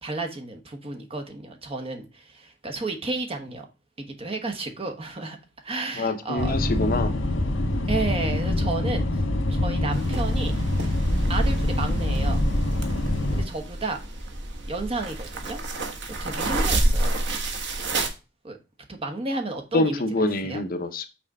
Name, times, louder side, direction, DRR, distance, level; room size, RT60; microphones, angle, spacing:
voice 1, 0.0-3.7 4.0-5.4 5.6-6.5 7.9-9.2 9.5-10.5 11.3-12.4 13.3-14.0 14.7-15.6 16.2-17.2 18.4-18.6 18.9-20.6, right 2 dB, 30° right, 1.1 m, -32 dB
voice 2, 6.0-7.1 19.7-21.1, left 2 dB, 50° left, 0.7 m, -25 dB
sound 1, 6.4-13.4, left 1 dB, 80° left, 1.3 m, -25 dB
sound 2, 9.9-18.1, right 1 dB, 65° right, 1.2 m, -28 dB
6.2 x 4.1 x 5.3 m
head